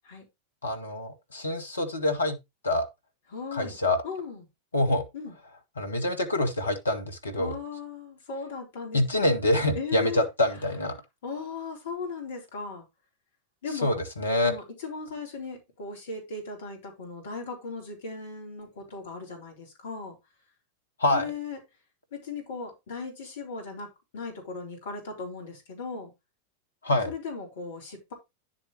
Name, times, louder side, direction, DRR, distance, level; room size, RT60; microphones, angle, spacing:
voice 1, 0.6-2.4 2.6-2.9 3.5-4.0 4.7-5.0 5.8-7.6 8.9-11.0 13.8-14.5 21.0-21.3 26.8-27.1, left 1 dB, 75° left, 1.8 m, -26 dB
voice 2, 3.3-3.8 4.0-4.4 5.1-5.3 7.3-9.5 9.7-10.2 11.2-12.9 13.6-14.0 14.4-20.2 21.1-21.6 22.1-26.1 27.1-28.1, left 4 dB, 60° left, 3.9 m, -37 dB
10.0 x 7.2 x 3.2 m
figure-of-eight pair, 90°, 0 cm